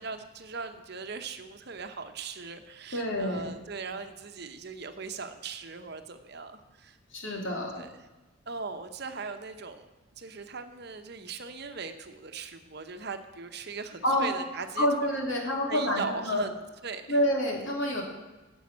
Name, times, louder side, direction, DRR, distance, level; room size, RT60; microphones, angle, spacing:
voice 1, 0.0-7.0 7.8-8.0 8.5-9.9 10.2-17.2, right 4 dB, 55° right, 8 dB, 0.9 m, -39 dB
voice 2, 2.9-3.6 7.1-7.8 14.0-14.3 14.8-16.5 17.1-18.0, equal, 70° left, 0 dB, 2.6 m, -28 dB
10.5 x 7.2 x 8.5 m, 1.1 s
head